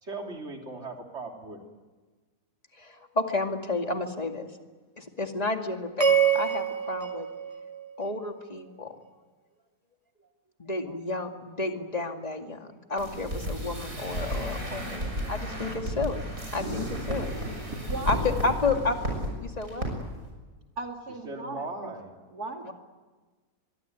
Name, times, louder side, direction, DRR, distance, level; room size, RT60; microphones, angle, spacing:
voice 1, 0.0-1.6 21.2-22.1, right 3 dB, 45° right, 2 dB, 3.6 m, -38 dB
voice 2, 2.8-4.5 5.0-7.3 8.0-9.0 10.6-16.3 16.5-17.3 18.1-19.0 19.4-19.9 22.6-22.7, left 3 dB, 25° left, 4 dB, 2.3 m, -31 dB
sound 1, 6.0-8.4, right 7 dB, 20° right, 1.7 m, -26 dB
sound 2, 13.0-19.3 19.6-19.9 20.1-20.3, equal, 65° right, 7.0 m, -33 dB
voice 3, 17.7-18.6 20.8-21.9 22.3-22.7, right 3 dB, 80° right, 3 dB, 3.1 m, -38 dB
25.0 x 22.5 x 9.4 m, 1.3 s
omnidirectional pair, 1.6 m